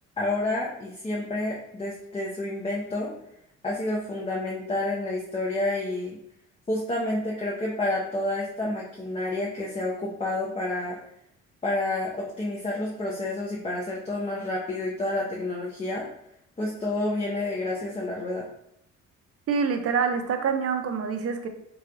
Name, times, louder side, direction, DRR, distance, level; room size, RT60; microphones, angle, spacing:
voice 1, 0.2-3.1 3.6-6.2 6.7-11.0 11.6-16.0 16.6-18.5, left 2 dB, 20° left, -4 dB, 0.7 m, -29 dB
voice 2, 19.5-21.5, right 6 dB, 50° right, 6 dB, 0.6 m, -26 dB
2.9 x 2.3 x 3.7 m, 0.75 s
cardioid pair, 90°, 30 cm